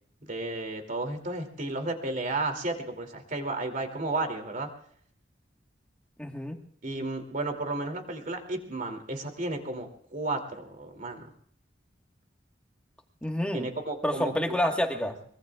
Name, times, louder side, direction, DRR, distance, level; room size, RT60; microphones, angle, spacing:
voice 1, 0.2-4.7 6.8-11.2 13.5-14.3 14.9-15.0, right 2 dB, 45° right, 5 dB, 2.7 m, -33 dB
voice 2, 6.2-6.6 13.2-13.7 14.0-15.1, equal, 5° left, 3 dB, 1.5 m, -28 dB
23.5 x 23.0 x 2.4 m, 0.63 s
head